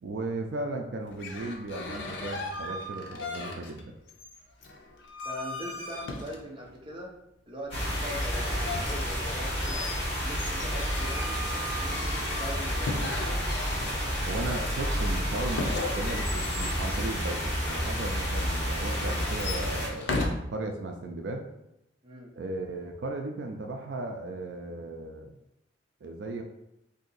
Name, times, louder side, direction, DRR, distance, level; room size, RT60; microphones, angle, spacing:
voice 1, 0.0-3.9 14.2-20.1 20.5-21.5 22.4-25.4 26.0-26.4, right 2 dB, 70° right, 3 dB, 0.4 m, -36 dB
sound 1, 1.1-3.8 4.1-6.7 7.7-14.3 15.4-17.9 18.7-20.3, left 2 dB, 75° left, 0.6 m, -37 dB
voice 2, 5.2-7.1 7.5-10.0 10.2-11.4 11.7-13.4 22.0-22.3, equal, 25° right, -2 dB, 0.6 m, -41 dB
sound 2, 7.7-19.9, equal, 30° left, 1.4 m, -30 dB
2.7 x 2.6 x 3.9 m, 0.84 s
head